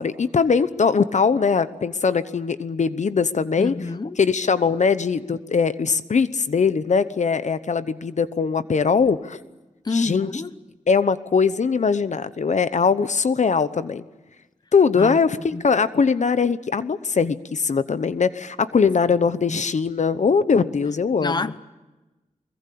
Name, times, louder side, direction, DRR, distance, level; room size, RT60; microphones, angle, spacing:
voice 1, 0.0-3.7 4.2-9.4 9.9-10.3 10.9-14.0 14.7-21.5, left 5 dB, 60° left, 0.9 m, -21 dB
voice 2, 3.6-4.2 9.8-10.5 15.0-15.2 15.5-15.6 19.3-19.6 21.2-21.6, left 3 dB, 30° left, 0.9 m, -28 dB
24.0 x 22.0 x 8.5 m
wide cardioid pair, 85°, 13 cm